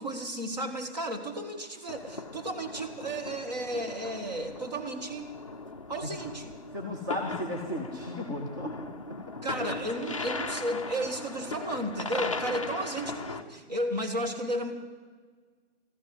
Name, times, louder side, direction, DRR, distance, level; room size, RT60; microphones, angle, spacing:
voice 1, 0.0-5.3 5.7-6.5 9.4-14.7, right 1 dB, 35° right, 5 dB, 1.5 m, -33 dB
sound 1, 1.9-13.4, left 3 dB, 30° left, 0.5 m, -39 dB
voice 2, 6.7-9.2, left 1 dB, 20° right, -1 dB, 1.0 m, -35 dB
13.5 x 11.0 x 7.8 m, 1.5 s
hypercardioid pair, 165°, 34 cm